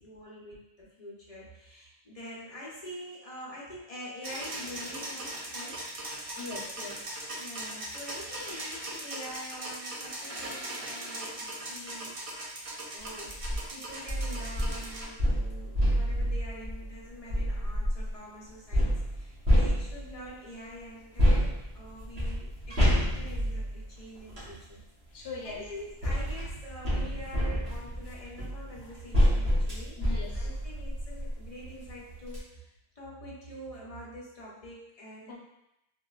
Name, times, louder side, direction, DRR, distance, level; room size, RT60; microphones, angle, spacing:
voice 1, 0.0-5.8 7.4-12.5 12.9-22.5 22.9-24.8 25.1-32.7 33.0-35.3, equal, 40° left, -5 dB, 0.7 m, -45 dB
sound 1, 4.2-15.1, right 1 dB, 45° right, 0.5 m, -39 dB
voice 2, 6.3-7.3 25.1-25.6 30.0-30.5 35.3-35.4, left 3 dB, 80° left, -3 dB, 0.9 m, -41 dB
sound 2, 13.3-13.6 14.1-18.1 18.7-20.3 21.2-24.5 25.5-31.4 31.8-31.9 32.2-32.4, equal, 85° right, 1.3 m, -28 dB
3.7 x 2.1 x 2.3 m, 0.86 s
omnidirectional pair, 1.0 m